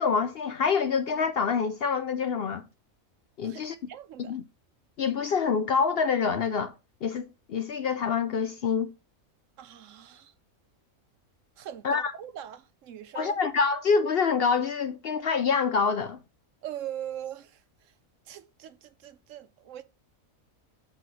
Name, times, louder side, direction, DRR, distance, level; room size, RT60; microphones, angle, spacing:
voice 1, 0.0-2.6 3.4-3.8 4.3-4.4 5.0-6.7 7.0-8.9 11.8-12.1 13.1-16.2, left 5 dB, 60° left, 0.7 m, -26 dB
voice 2, 3.9-4.4 9.6-10.3 11.6-13.4 16.6-17.6 18.3-19.8, right 11 dB, 70° right, 1.0 m, -41 dB
7.5 x 3.9 x 6.3 m
omnidirectional pair, 1.4 m